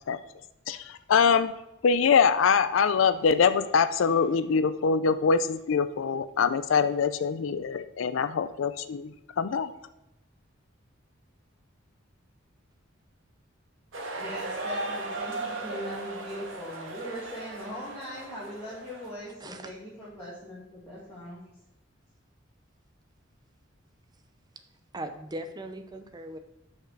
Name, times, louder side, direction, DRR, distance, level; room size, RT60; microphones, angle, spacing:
voice 1, 0.7-1.5 1.8-9.7, left 6 dB, 85° left, 13 dB, 0.4 m, -24 dB
sound 1, 13.9-19.1, right 2 dB, 85° right, 1.5 m, -37 dB
voice 2, 14.0-21.5, equal, 15° left, -10 dB, 2.3 m, -40 dB
voice 3, 19.4-19.7 24.9-26.4, right 1 dB, 20° right, 7 dB, 0.7 m, -39 dB
6.4 x 5.4 x 6.3 m, 0.90 s
head